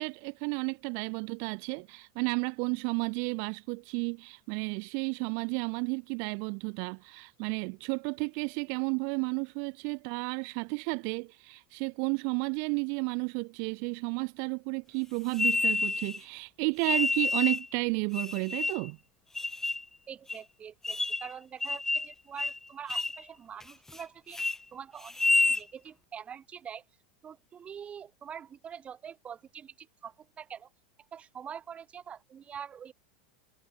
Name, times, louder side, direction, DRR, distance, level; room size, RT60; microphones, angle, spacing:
voice 1, 0.0-19.0, right 40 dB or more, 55° right, 2.0 m, -32 dB
sound 1, 15.3-16.2 16.8-17.7 18.1-18.9 19.4-19.8 20.3-20.4 20.8-21.3 21.6-22.1 22.4-22.6 22.9-23.2 23.6-24.0 24.3-24.6 25.1-25.6, left 2 dB, 10° left, 2.3 m, -29 dB
voice 2, 20.1-26.8 27.2-30.7 31.1-32.9, right 8 dB, 30° right, 4.1 m, -45 dB
hypercardioid pair, 100°, 4 cm